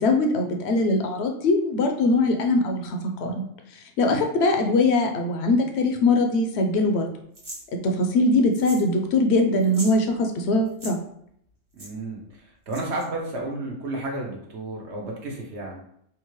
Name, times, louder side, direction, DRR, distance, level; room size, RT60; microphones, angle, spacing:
voice 1, 0.0-3.4 4.0-7.1 8.0-11.0, left 2 dB, 65° left, 4 dB, 0.8 m, -21 dB
sound 1, 7.3-7.6 8.5-8.9 9.2-9.3 9.6-10.0 10.7-10.9 11.8-11.9 12.7-13.0, right 1 dB, 30° right, 1.0 m, -39 dB
voice 2, 11.7-15.8, right 2 dB, 65° right, -1 dB, 1.1 m, -32 dB
3.6 x 2.4 x 3.1 m, 0.70 s
omnidirectional pair, 1.3 m